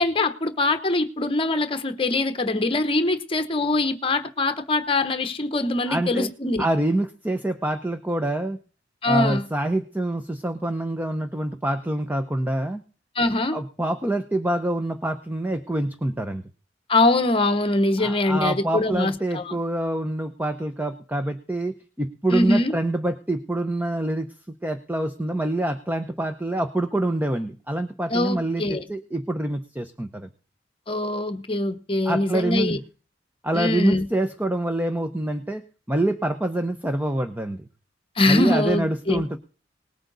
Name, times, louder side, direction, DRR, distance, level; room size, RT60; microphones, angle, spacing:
voice 1, 0.0-6.6 9.0-9.5 13.2-13.6 16.9-19.6 22.3-22.7 28.1-28.8 30.9-32.8 33.5-34.1 38.2-39.2, left 2 dB, 30° left, 1.0 m, -23 dB
voice 2, 5.9-6.3 6.6-8.6 9.1-12.8 13.5-16.4 18.0-30.3 32.0-32.8 33.4-37.7 38.2-39.4, right 1 dB, 10° right, 0.8 m, -26 dB
19.0 x 8.7 x 4.0 m
head